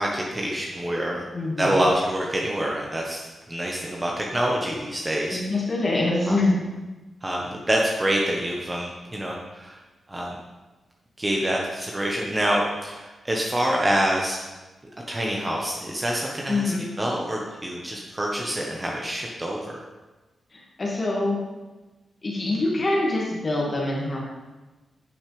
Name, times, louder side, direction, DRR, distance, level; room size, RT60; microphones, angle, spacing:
voice 1, 0.0-1.3 1.6-5.4 6.3-6.4 7.2-9.8 10.1-10.4 11.2-14.4 15.1-19.7, right 1 dB, 25° right, -2 dB, 1.3 m, -26 dB
voice 2, 1.3-1.8 5.3-6.5 16.5-16.9 20.5-21.4 22.2-24.2, left 2 dB, 45° left, -3 dB, 2.2 m, -25 dB
10.5 x 5.8 x 3.5 m, 1.2 s
supercardioid pair, 45°, 0 cm